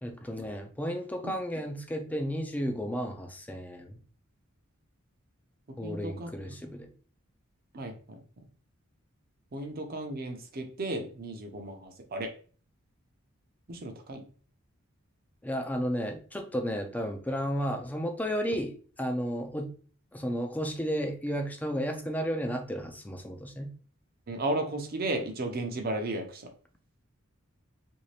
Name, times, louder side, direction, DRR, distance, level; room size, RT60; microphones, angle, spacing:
voice 1, 0.0-4.0 5.8-6.9 15.4-19.7 20.1-23.7, equal, 10° left, 5 dB, 0.4 m, -33 dB
voice 2, 5.8-6.6 7.7-8.2 9.5-12.3 13.7-14.3 24.3-26.5, right 2 dB, 45° right, 5 dB, 0.6 m, -34 dB
3.2 x 2.6 x 3.2 m, 0.42 s
head